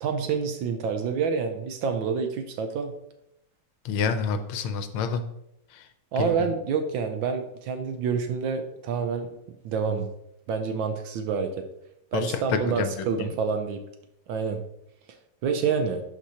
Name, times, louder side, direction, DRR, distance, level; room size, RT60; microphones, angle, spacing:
voice 1, 0.0-2.9 6.1-9.3 9.6-10.1 10.5-11.6 12.1-13.8 14.3-14.6 15.4-16.0, right 6 dB, 70° right, 6 dB, 1.3 m, -27 dB
voice 2, 3.8-5.2 5.7-5.9 6.2-6.5 12.1-13.3, left 6 dB, 80° left, 9 dB, 1.5 m, -28 dB
12.0 x 4.5 x 2.8 m, 0.81 s
omnidirectional pair, 2.3 m